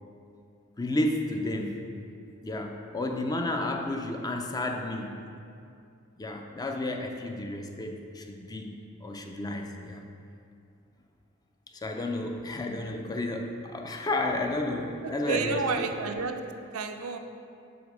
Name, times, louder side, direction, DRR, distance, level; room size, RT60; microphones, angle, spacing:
voice 1, 0.8-1.9 2.4-5.3 6.2-10.1 11.7-15.9, left 2 dB, 20° left, 3 dB, 0.4 m, -32 dB
voice 2, 15.0-16.5 16.7-17.2, right 5 dB, 85° right, 6 dB, 0.5 m, -31 dB
7.8 x 3.6 x 5.2 m, 2.4 s
head